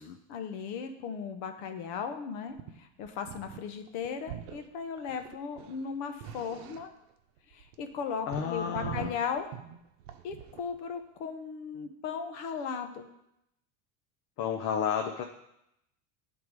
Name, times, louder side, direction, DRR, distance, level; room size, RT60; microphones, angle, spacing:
voice 1, 0.3-6.9 7.5-9.5 10.2-13.1, left 6 dB, 70° left, 7 dB, 1.0 m, -37 dB
sound 1, 2.5-2.8 3.0-3.6 3.9-4.7 5.0-7.1 7.4-10.8, right 10 dB, 90° right, 0.8 m, -43 dB
voice 2, 8.3-9.2 14.4-15.2, left 7 dB, 45° left, 3 dB, 0.6 m, -32 dB
10.5 x 3.6 x 4.7 m, 0.82 s
supercardioid pair, 135°, 36 cm